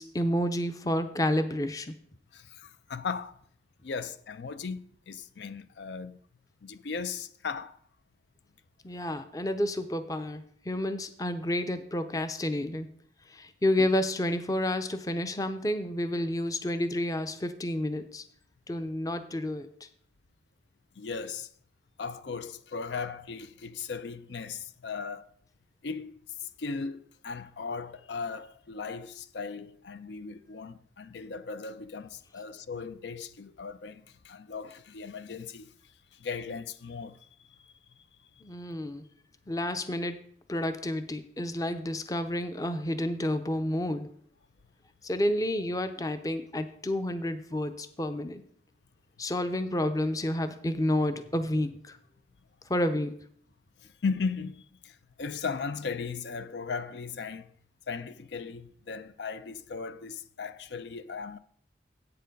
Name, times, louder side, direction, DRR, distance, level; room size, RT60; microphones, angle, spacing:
voice 1, 0.0-1.9 8.8-12.9 13.3-18.2 18.7-19.7 38.4-39.0 39.5-40.2 40.5-44.1 45.0-48.4 49.2-52.0 52.7-53.1, left 1 dB, 20° left, 0.5 m, -30 dB
voice 2, 2.3-3.4 3.8-6.2 6.6-7.8 10.7-10.8 13.8-13.9 21.0-21.5 22.0-25.3 25.8-35.7 36.2-37.2 54.0-57.5 57.9-61.4, left 5 dB, 85° left, 0.5 m, -37 dB
8.4 x 6.9 x 5.2 m
head